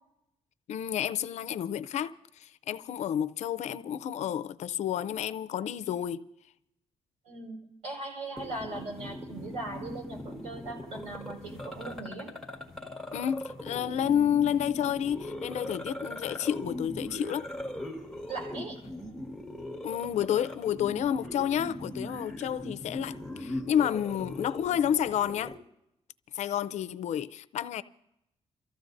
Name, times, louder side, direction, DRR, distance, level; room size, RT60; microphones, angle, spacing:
voice 1, 0.7-6.3 13.1-17.5 19.8-25.6 26.3-27.8, left 9 dB, 80° left, 0.5 m, -30 dB
voice 2, 7.2-12.3 18.3-18.8, right 2 dB, 75° right, 5.2 m, -39 dB
sound 1, 8.4-25.6, left 1 dB, ahead, 1.7 m, -40 dB
29.0 x 14.5 x 2.6 m
wide cardioid pair, 155°, 12 cm